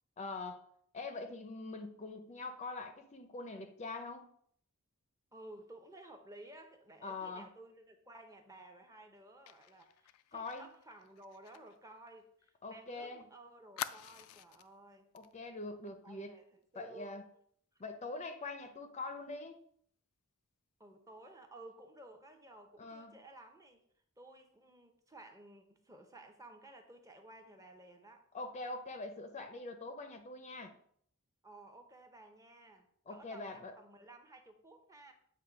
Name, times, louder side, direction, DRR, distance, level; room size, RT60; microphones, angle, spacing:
voice 1, 0.2-0.7 0.9-4.3 7.0-7.5 10.3-10.7 12.6-13.3 15.1-16.3 16.8-17.2 17.8-19.6 22.8-23.1 28.3-30.7 33.1-33.7, left 3 dB, 30° left, 7 dB, 0.5 m, -43 dB
voice 2, 5.3-15.1 16.0-17.2 17.7-17.8 20.8-23.8 24.2-28.2 31.4-35.1, right 1 dB, 15° right, 5 dB, 0.7 m, -55 dB
Fire, 9.5-12.9 13.2-13.3 13.8-14.7 15.1-15.3 15.6-15.9, left 11 dB, 90° left, 0.3 m, -47 dB
7.9 x 2.7 x 5.0 m, 0.64 s
head